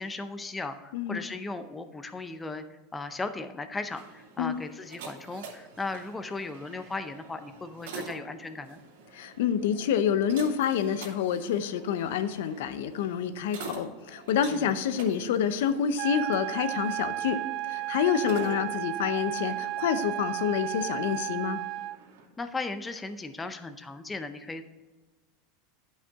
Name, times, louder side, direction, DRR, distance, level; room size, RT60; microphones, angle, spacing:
voice 1, 0.0-8.8 14.5-14.8 22.4-24.6, left 3 dB, 10° left, 8 dB, 0.5 m, -37 dB
sound 1, 3.7-22.2, right 4 dB, 80° right, 2.5 m, -47 dB
voice 2, 9.1-17.4 17.7-21.6, left 8 dB, 75° left, 11 dB, 0.7 m, -28 dB
sound 2, 16.0-22.0, right 15 dB, 45° right, 0.3 m, -33 dB
10.5 x 5.6 x 3.5 m, 1.2 s
supercardioid pair, 155°, 0 cm